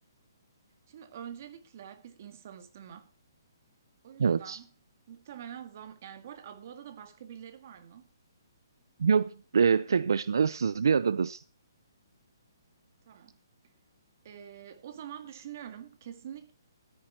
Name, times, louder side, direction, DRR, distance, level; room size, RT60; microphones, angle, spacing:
voice 1, 0.9-3.1 4.0-4.7 5.1-8.1 13.1-13.4 14.2-16.5, right 9 dB, 40° right, 1.9 m, -45 dB
voice 2, 4.2-4.6 9.0-11.4, right 6 dB, 75° right, 0.6 m, -25 dB
13.0 x 10.5 x 4.6 m
hypercardioid pair, 170°, 2 cm